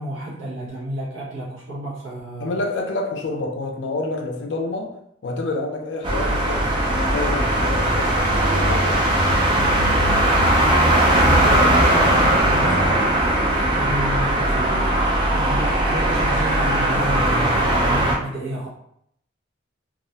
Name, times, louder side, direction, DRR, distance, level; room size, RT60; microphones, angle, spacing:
voice 1, 0.0-2.5 11.1-13.2 13.6-15.0 15.3-18.7, equal, 80° right, -7 dB, 0.6 m, -30 dB
voice 2, 2.4-4.9 5.2-8.9, left 2 dB, 65° left, 3 dB, 0.4 m, -28 dB
sound 1, 6.0-18.1, right 1 dB, 25° right, 0.3 m, -19 dB
2.3 x 2.1 x 2.7 m, 0.71 s
head